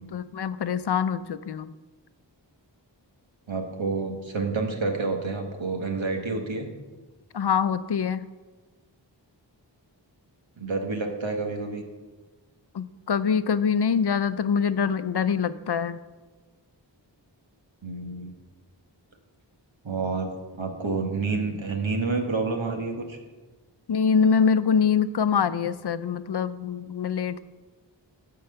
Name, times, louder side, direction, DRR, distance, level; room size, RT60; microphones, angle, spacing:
voice 1, 0.0-1.7 7.3-8.3 12.7-16.0 23.9-27.4, left 6 dB, 60° left, 13 dB, 0.6 m, -24 dB
voice 2, 3.5-6.7 10.6-11.8 17.8-18.3 19.8-20.3 20.6-23.2, right 3 dB, 85° right, 3 dB, 1.6 m, -29 dB
12.5 x 4.7 x 7.8 m, 1.3 s
wide cardioid pair, 45°, 45 cm